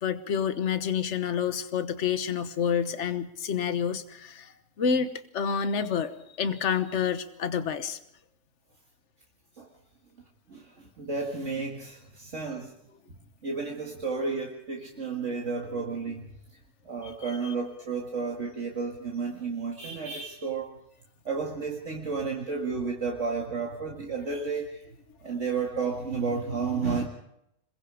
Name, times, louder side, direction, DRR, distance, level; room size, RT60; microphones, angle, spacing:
voice 1, 0.0-6.1 6.4-8.0 17.0-17.1, left 7 dB, 65° left, 10 dB, 1.5 m, -28 dB
voice 2, 10.5-12.7 13.4-16.3 16.8-20.8 21.2-24.9 25.2-27.1, right 4 dB, 65° right, -1 dB, 2.4 m, -32 dB
27.0 x 22.0 x 5.0 m, 0.79 s
omnidirectional pair, 1.4 m